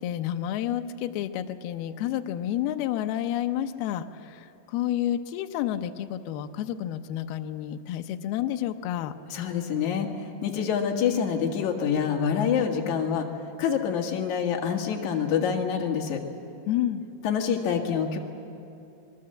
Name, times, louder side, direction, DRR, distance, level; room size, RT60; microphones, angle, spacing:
voice 1, 0.0-9.1 16.7-17.0, left 11 dB, 75° left, 7 dB, 2.6 m, -30 dB
voice 2, 9.3-10.1 10.4-13.3 13.6-16.2 17.2-18.2, left 7 dB, 55° left, 2 dB, 2.6 m, -26 dB
25.0 x 21.5 x 7.7 m, 2.7 s
omnidirectional pair, 4.8 m